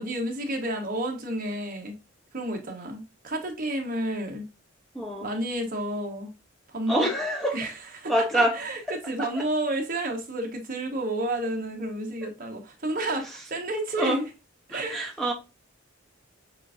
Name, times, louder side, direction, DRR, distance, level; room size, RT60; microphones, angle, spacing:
voice 1, 0.0-1.9 2.3-4.4 5.2-6.3 6.7-7.1 7.5-14.3 14.7-15.1, right 1 dB, 40° right, 1.1 m, -31 dB
voice 2, 4.9-5.3 6.9-7.6 8.1-8.5 12.2-12.3 14.0-14.2 14.7-15.3, right 1 dB, ahead, 0.7 m, -25 dB
7.3 x 2.6 x 2.4 m
head